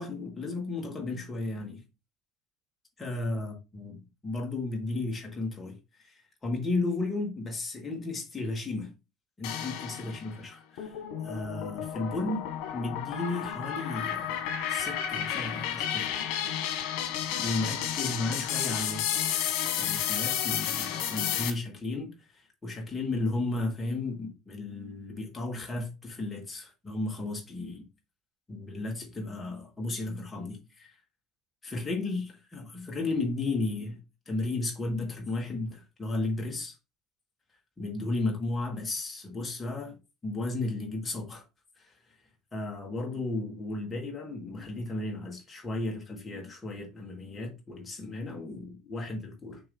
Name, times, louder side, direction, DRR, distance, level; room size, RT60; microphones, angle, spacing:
voice 1, 0.0-1.8 3.0-3.9 4.2-5.8 6.0-8.9 9.4-10.9 11.2-12.4 12.7-14.4 14.7-16.3 17.4-19.5 19.8-27.8 28.5-30.9 31.6-34.0 34.3-36.8 37.8-40.0 40.2-41.4 41.8-41.9 42.5-49.6, left 2 dB, 10° left, 1.5 m, -34 dB
sound 1, 9.4-10.3 10.8-21.5, left 10 dB, 70° left, 1.4 m, -32 dB
6.7 x 2.7 x 5.3 m
cardioid pair, 175°, 0 cm